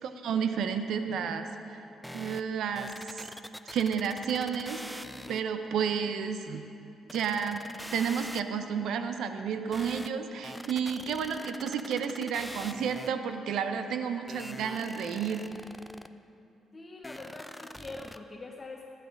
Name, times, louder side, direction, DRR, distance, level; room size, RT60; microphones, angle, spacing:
voice 1, 0.0-1.8 2.1-3.3 3.7-5.0 5.3-6.7 7.1-15.4, right 7 dB, 75° right, 8 dB, 0.7 m, -31 dB
sound 1, 2.0-2.4 2.8-5.4 5.9-6.0 6.2-6.3 7.1-8.4 9.7-10.1 10.4-13.3 14.3-16.1 17.0-18.2, equal, 5° left, 0.4 m, -43 dB
voice 2, 16.7-18.9, left 3 dB, 30° left, 1 dB, 0.9 m, -44 dB
13.0 x 11.0 x 5.2 m, 2.7 s
cardioid pair, 90°, 0 cm